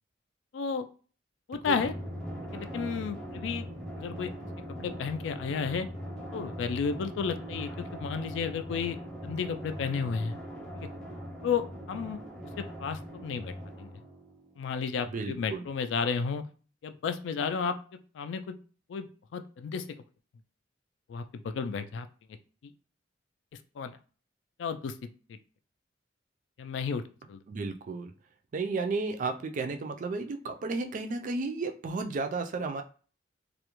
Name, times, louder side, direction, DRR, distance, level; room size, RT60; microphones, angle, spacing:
voice 1, 0.5-0.9 1.5-1.9 2.5-3.7 4.0-4.3 4.7-5.9 6.3-9.0 9.2-10.3 10.7-10.9 11.4-12.2 12.6-13.5 13.8-13.9 14.6-16.4 16.8-17.8 18.1-18.6 18.9-19.1 19.3-19.8 21.1-22.1 23.8-24.0 24.6-25.1 26.6-27.4, left 5 dB, 75° left, 0.3 m, -32 dB
Drum, 1.6-14.7, equal, 5° left, 0.6 m, -41 dB
voice 2, 15.1-15.7 27.5-28.1 28.5-32.8, right 3 dB, 45° right, 0.3 m, -33 dB
2.4 x 2.1 x 2.9 m
head